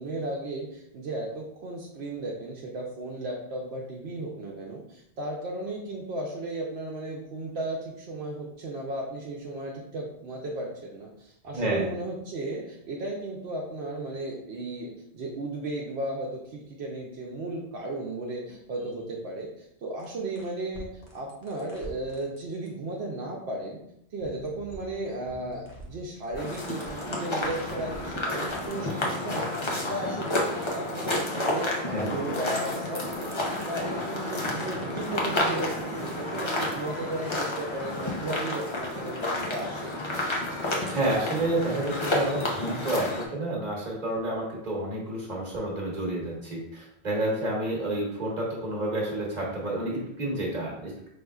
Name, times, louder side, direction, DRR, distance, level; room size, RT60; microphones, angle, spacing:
voice 1, 0.0-20.9 21.1-23.8 24.1-39.9, right 2 dB, 75° right, -2 dB, 0.9 m, -35 dB
voice 2, 11.5-11.8 31.9-32.1 40.9-51.1, right 1 dB, 40° right, -3 dB, 1.3 m, -29 dB
sound 1, 20.0-22.7 24.2-28.7, left 1 dB, 55° left, 1.1 m, -46 dB
sound 2, 26.4-43.3, left 1 dB, 30° left, 0.7 m, -30 dB
5.2 x 3.5 x 2.3 m, 0.78 s
omnidirectional pair, 1.1 m